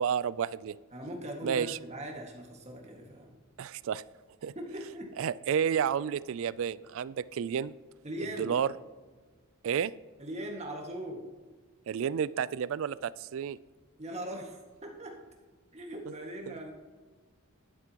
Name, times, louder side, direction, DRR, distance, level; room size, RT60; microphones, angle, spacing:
voice 1, 0.0-0.8 1.4-1.8 3.6-4.0 4.4-4.5 5.2-7.7 8.4-8.7 9.6-9.9 11.9-13.6, right 8 dB, 65° right, 19 dB, 0.3 m, -30 dB
voice 2, 0.9-3.3 4.6-5.1 8.0-8.6 10.2-11.2 14.0-15.2 15.7-16.7, right 1 dB, 30° right, 1 dB, 1.7 m, -40 dB
11.0 x 9.6 x 2.9 m, 1.4 s
head